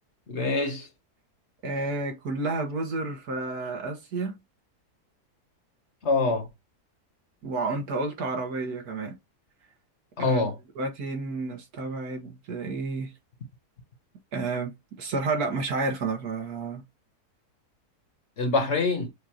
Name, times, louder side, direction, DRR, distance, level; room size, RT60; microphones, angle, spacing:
voice 1, 0.3-0.9 6.0-6.5 10.2-10.6 18.4-19.1, left 3 dB, 50° left, 1.1 m, -25 dB
voice 2, 1.6-4.4 7.4-9.2 10.2-10.5 10.8-13.1 14.3-16.8, right 3 dB, 75° right, 1.8 m, -31 dB
6.5 x 2.5 x 2.8 m
omnidirectional pair, 1.7 m